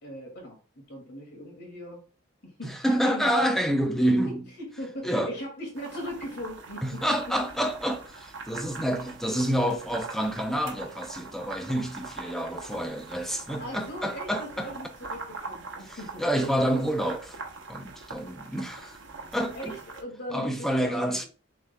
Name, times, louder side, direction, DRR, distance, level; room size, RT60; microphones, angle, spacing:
voice 1, 0.0-2.0 2.4-3.4 4.0-7.0 7.4-7.5 13.6-16.2 19.6-21.3, equal, 55° left, 2.0 m, -39 dB
voice 2, 2.6-4.4 5.0-5.3 6.8-14.7 15.8-17.4 17.7-19.0 19.3-19.8 20.3-21.2, equal, ahead, 0.5 m, -28 dB
sound 1, 5.8-20.0, right 4 dB, 60° right, 1.0 m, -42 dB
6.1 x 3.6 x 2.2 m
head